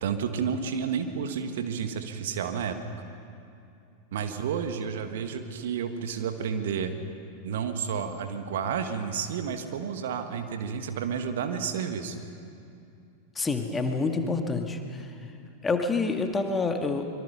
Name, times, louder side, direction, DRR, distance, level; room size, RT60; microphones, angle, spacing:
voice 1, 0.0-2.8 4.1-7.0 7.4-12.2, right 7 dB, 55° right, 7 dB, 1.4 m, -31 dB
voice 2, 13.4-15.2 15.6-17.0, left 3 dB, 15° left, 4 dB, 1.9 m, -27 dB
25.0 x 23.0 x 5.8 m, 2.6 s
figure-of-eight pair, 90°, 0 cm